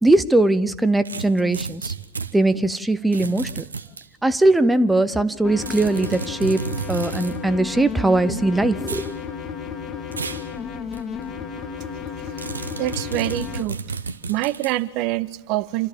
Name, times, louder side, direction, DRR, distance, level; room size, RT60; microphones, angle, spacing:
voice 1, 0.0-1.9 2.3-3.6 4.2-9.0, right 2 dB, 5° right, 12 dB, 0.7 m, -20 dB
sound 1, 1.1-2.3 3.1-4.1 5.6-7.4 8.8-9.1 10.1-10.5 10.9-11.0 12.4-14.8, right 5 dB, 75° right, 1.0 m, -32 dB
sound 2, 5.4-13.6, left 6 dB, 30° left, 1.8 m, -33 dB
voice 2, 12.8-13.8 14.3-15.9, right 17 dB, 45° right, 16 dB, 0.7 m, -25 dB
27.5 x 13.5 x 7.5 m, 1.0 s
figure-of-eight pair, 90°, 0 cm